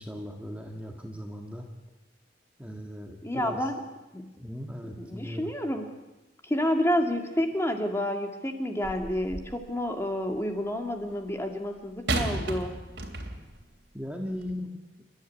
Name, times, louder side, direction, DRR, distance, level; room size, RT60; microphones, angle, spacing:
voice 1, 0.0-1.7 2.6-3.7 4.4-5.5 13.9-14.7, equal, 5° right, 2 dB, 1.7 m, -38 dB
voice 2, 3.2-3.8 4.1-4.3 4.8-5.9 6.4-12.7, equal, 15° left, 4 dB, 2.2 m, -29 dB
sound 1, 8.8-9.7 12.1-13.6 14.4-14.5, right 2 dB, 65° right, 3.1 m, -33 dB
28.5 x 12.5 x 9.6 m, 1.1 s
head